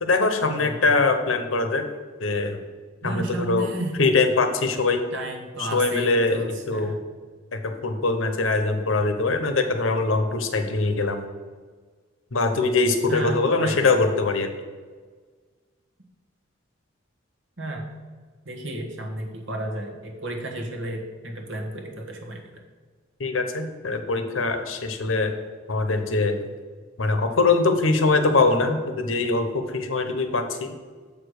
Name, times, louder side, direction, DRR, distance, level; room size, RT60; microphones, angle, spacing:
voice 1, 0.0-1.9 2.2-2.6 3.0-3.7 4.0-5.0 5.6-7.0 7.5-11.2 12.3-14.5 23.2-25.4 25.7-26.4 27.0-30.7, left 3 dB, 80° left, 7 dB, 0.9 m, -22 dB
voice 2, 0.5-0.9 3.0-4.0 5.1-6.9 13.1-13.9 17.6-17.9 18.4-22.5, right 1 dB, 65° right, 2 dB, 1.4 m, -32 dB
7.1 x 5.0 x 6.5 m, 1.5 s
head